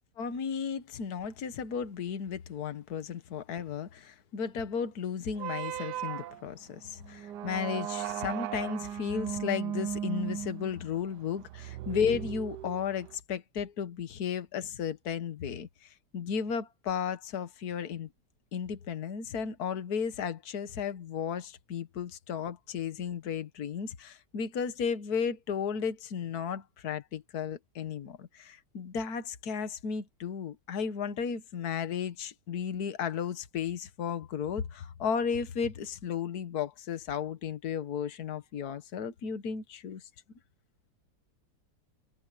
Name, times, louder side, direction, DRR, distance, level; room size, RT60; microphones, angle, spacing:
voice 1, 0.2-15.7 16.1-18.1 18.5-40.0, left 7 dB, 60° left, 1.8 m, -34 dB
sound 1, 5.3-13.1, right 10 dB, 75° right, 1.3 m, -37 dB
omnidirectional pair, 1.9 m